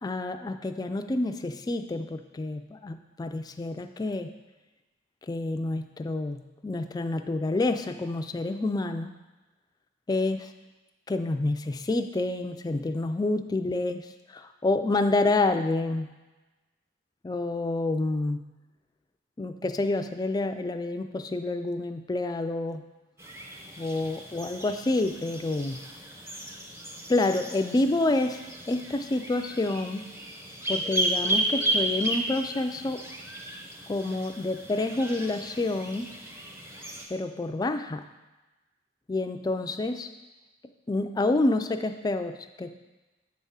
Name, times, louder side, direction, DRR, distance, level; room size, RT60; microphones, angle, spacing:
voice 1, 0.0-4.3 5.3-9.1 10.1-10.5 11.1-16.1 17.2-18.4 19.4-22.8 23.8-25.8 27.1-30.1 30.7-33.1 33.9-36.1 37.1-38.1 39.1-40.1 40.9-42.8, left 2 dB, 20° left, 7 dB, 0.3 m, -28 dB
sound 1, 23.2-37.1, right 1 dB, 15° right, 0.7 m, -34 dB
8.0 x 3.6 x 5.5 m, 1.1 s
head